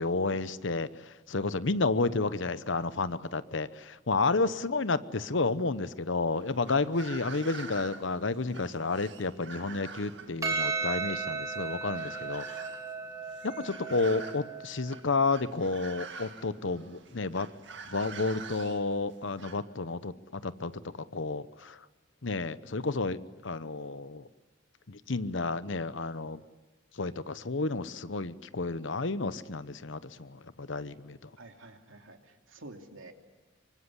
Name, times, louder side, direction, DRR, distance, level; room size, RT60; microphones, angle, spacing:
voice 1, 0.0-12.4 13.4-17.5 17.9-20.7 21.1-21.8 22.2-24.2 24.9-26.4 27.0-31.3, left 3 dB, 70° left, 15 dB, 0.9 m, -31 dB
sound 1, 6.3-19.6, right 4 dB, 60° right, 2.1 m, -47 dB
Percussion, 10.4-15.0, right 4 dB, 15° right, 3.1 m, -35 dB
voice 2, 31.4-33.1, right 2 dB, 85° right, 4 dB, 2.8 m, -49 dB
25.0 x 24.0 x 10.0 m, 1.2 s
head